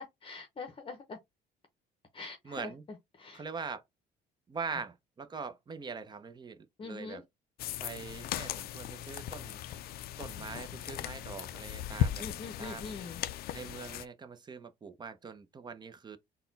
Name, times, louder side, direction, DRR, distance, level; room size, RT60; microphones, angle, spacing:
voice 1, 0.2-1.2 2.1-2.7 3.1-3.5 6.8-7.2 12.2-13.2, left 3 dB, 30° left, 0.8 m, -43 dB
voice 2, 2.4-2.8 3.3-3.8 4.5-7.2 7.8-9.6 10.2-12.2 12.6-12.9 13.5-16.2, right 5 dB, 25° right, 0.6 m, -42 dB
sound 1, 7.6-14.1, left 11 dB, 65° left, 0.4 m, -37 dB
4.0 x 2.2 x 3.9 m
cardioid pair, 110°, 17 cm